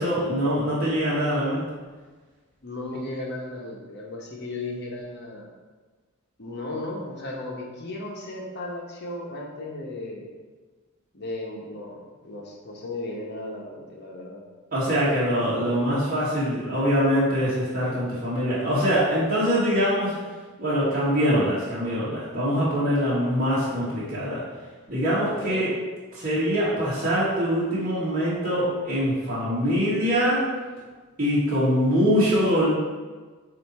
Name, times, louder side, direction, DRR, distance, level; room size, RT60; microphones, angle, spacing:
voice 1, 0.0-1.6 14.7-20.1 20.6-24.4 24.9-25.7 26.1-30.4 31.2-32.7, equal, 40° right, -11 dB, 1.5 m, -23 dB
voice 2, 2.6-5.5 6.4-10.3 11.1-14.4 25.4-25.7, left 2 dB, 50° left, -1 dB, 1.0 m, -35 dB
8.0 x 2.8 x 4.2 m, 1.4 s
head